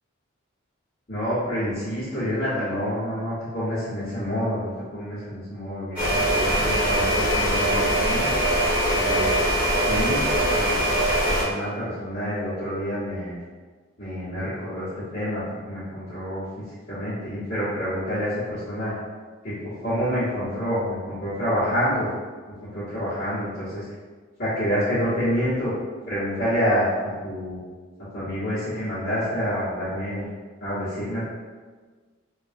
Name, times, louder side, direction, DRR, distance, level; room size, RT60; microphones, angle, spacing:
voice 1, 1.1-8.5 8.9-9.3 9.7-10.3 10.5-10.8 11.2-13.4 14.0-18.9 19.4-22.1 22.6-23.8 24.4-25.7 26.1-27.6 28.1-30.2 30.6-31.3, equal, 45° left, -15 dB, 1.2 m, -28 dB
sound 1, 6.0-11.4, right 1 dB, 5° right, 1.1 m, -22 dB
3.1 x 2.4 x 2.5 m, 1.4 s
head